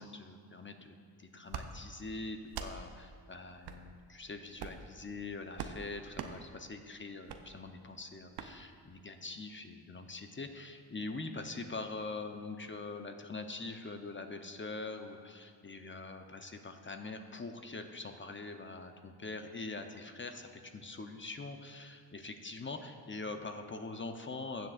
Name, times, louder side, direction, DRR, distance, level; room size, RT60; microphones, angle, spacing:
voice 1, 0.0-24.7, left 3 dB, 30° left, 6 dB, 0.8 m, -43 dB
sound 1, 1.5-1.7 2.5-2.7 3.6-3.8 4.5-4.9 5.6-5.8 6.1-6.3 7.3-7.4 8.3-8.5, right 8 dB, 70° right, 0.7 m, -41 dB
15.5 x 7.6 x 2.5 m, 2.2 s
supercardioid pair, 45°, 41 cm